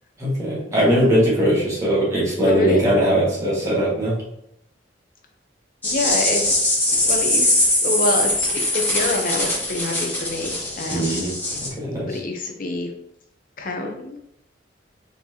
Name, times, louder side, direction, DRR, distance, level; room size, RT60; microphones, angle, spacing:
voice 1, 0.2-4.2 10.9-11.3 11.6-12.2, equal, 15° right, -7 dB, 1.8 m, -20 dB
voice 2, 0.7-1.1 2.5-2.8 5.8-11.2 12.1-12.9 13.6-14.2, left 2 dB, 50° left, 3 dB, 0.8 m, -27 dB
sound 1, 5.8-11.7, left 1 dB, 10° left, 1.6 m, -22 dB
4.3 x 4.2 x 2.9 m, 0.75 s
head